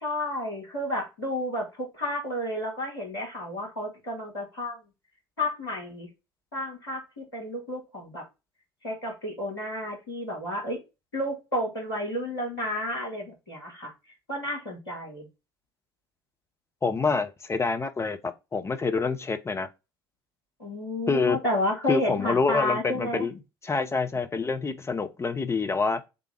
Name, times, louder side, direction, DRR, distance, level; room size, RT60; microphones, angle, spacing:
voice 1, 0.0-4.8 5.4-6.1 6.5-8.2 8.8-10.8 11.1-13.9 14.3-15.3 20.6-23.3, left 1 dB, 80° left, 1.5 m, -31 dB
voice 2, 16.8-19.7 21.1-21.4 21.9-23.3 23.6-26.0, left 4 dB, 25° left, 0.8 m, -27 dB
3.8 x 3.4 x 3.4 m
figure-of-eight pair, 50°, 12 cm